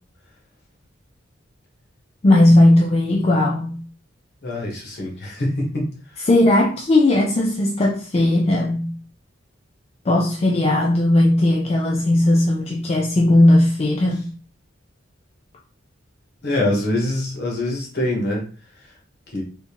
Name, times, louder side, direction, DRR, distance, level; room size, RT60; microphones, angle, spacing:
voice 1, 2.2-3.8 6.3-8.9 10.1-14.3, left 1 dB, 30° left, 0.4 m, -17 dB
voice 2, 4.4-6.3 16.4-18.5 19.3-19.4, left 1 dB, 55° left, 1.2 m, -24 dB
3.5 x 2.7 x 2.9 m
head